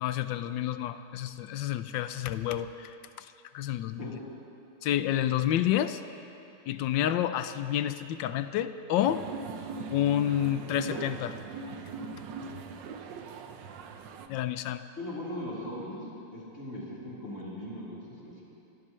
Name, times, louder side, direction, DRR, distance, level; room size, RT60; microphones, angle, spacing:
voice 1, 0.0-3.3 3.5-4.2 4.8-6.0 6.7-9.2 9.9-11.4 14.3-14.8, left 11 dB, 85° left, 11 dB, 1.3 m, -29 dB
sound 1, 9.1-14.3, right 4 dB, 80° right, 1.5 m, -40 dB
voice 2, 15.0-16.0 16.3-18.4, left 1 dB, 40° left, -8 dB, 4.2 m, -39 dB
27.0 x 14.5 x 3.2 m, 2.8 s
omnidirectional pair, 1.9 m